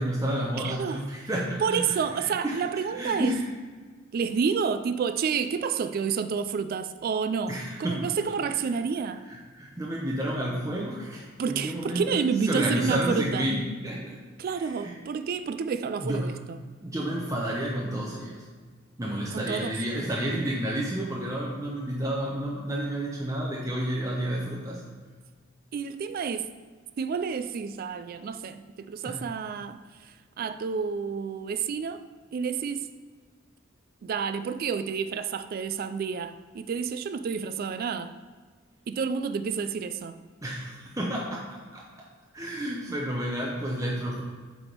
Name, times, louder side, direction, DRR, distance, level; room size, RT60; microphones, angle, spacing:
voice 1, 0.0-2.6 2.9-3.4 7.5-8.0 9.3-14.2 14.5-14.9 16.0-16.3 16.8-18.4 19.0-24.8 29.0-29.2 40.4-41.5 41.7-42.0 42.3-44.2, right 1 dB, 15° right, 0.6 m, -30 dB
voice 2, 0.6-1.0 1.6-3.4 4.1-9.3 11.4-13.5 14.4-16.6 19.3-19.8 25.7-26.5 27.0-32.0 32.3-32.9 34.0-38.1 38.9-40.2, right 6 dB, 50° right, 0.3 m, -29 dB
7.7 x 3.6 x 4.5 m
head